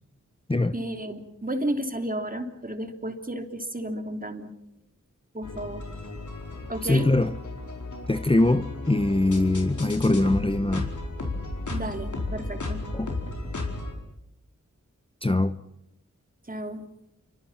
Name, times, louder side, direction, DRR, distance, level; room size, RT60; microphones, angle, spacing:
voice 1, 0.7-4.5 5.3-5.9 6.7-7.1 9.3-9.6 11.7-12.8 16.5-16.8, right 1 dB, 30° right, 3.3 m, -32 dB
sound 1, 5.4-13.9, left 2 dB, 75° left, 4.8 m, -34 dB
voice 2, 6.8-7.4 8.1-10.9 12.9-13.1 15.2-15.6, left 2 dB, 20° left, 0.9 m, -22 dB
28.5 x 24.5 x 6.0 m
wide cardioid pair, 50°, 30 cm